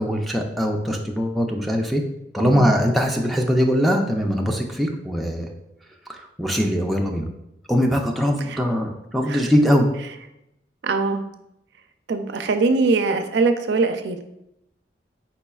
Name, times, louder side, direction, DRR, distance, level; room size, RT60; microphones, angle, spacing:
voice 1, 0.0-2.0 2.3-5.5 6.1-7.3 7.7-9.9, equal, ahead, 0 dB, 0.4 m, -21 dB
voice 2, 10.8-11.2 12.1-14.2, right 3 dB, 75° right, 6 dB, 0.4 m, -22 dB
4.8 x 4.1 x 2.3 m, 0.84 s
head